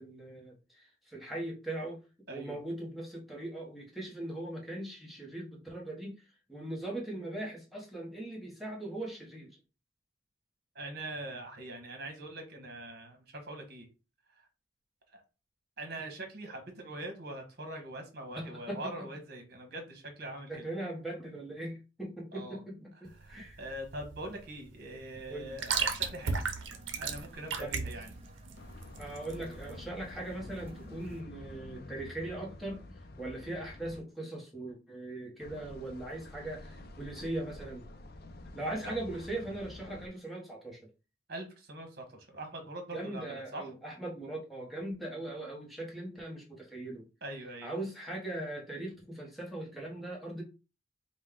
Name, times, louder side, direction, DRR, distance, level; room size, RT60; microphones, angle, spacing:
voice 1, 0.0-2.0 2.3-9.6 18.4-18.9 20.5-23.6 25.3-25.5 27.6-27.8 29.0-32.8 33.2-37.8 38.5-40.8 42.9-47.0 47.6-50.4, right 1 dB, ahead, 1.0 m, -40 dB
voice 2, 2.3-2.6 10.7-13.9 14.4-14.5 15.1-15.2 15.8-20.7 22.3-22.6 23.2-26.5 27.0-28.2 38.8-39.0 41.3-43.7 47.2-47.8, right 1 dB, 55° right, 1.3 m, -43 dB
sound 1, 23.1-29.8, right 5 dB, 75° right, 0.7 m, -36 dB
sound 2, 25.5-31.2, equal, 30° right, 0.7 m, -55 dB
sound 3, 28.5-34.0 35.4-40.1, left 1 dB, 50° left, 0.5 m, -49 dB
5.0 x 2.2 x 3.7 m
head